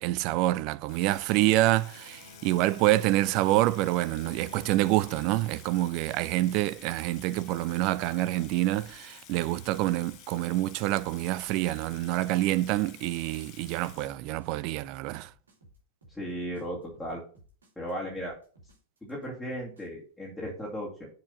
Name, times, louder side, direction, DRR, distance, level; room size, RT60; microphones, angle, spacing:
voice 1, 0.0-15.3, right 17 dB, 40° right, 0.4 m, -27 dB
Water tap faucet / Sink (filling or washing), 0.9-14.6, left 11 dB, 40° left, 0.9 m, -52 dB
sound 1, 1.1-6.0, left 3 dB, 80° left, 1.4 m, -51 dB
sound 2, 5.7-19.9, right 1 dB, 70° right, 3.1 m, -58 dB
voice 2, 16.1-17.2 17.8-18.4 19.0-21.1, equal, 5° left, 2.5 m, -36 dB
7.3 x 4.9 x 5.3 m
figure-of-eight pair, 95°, 0 cm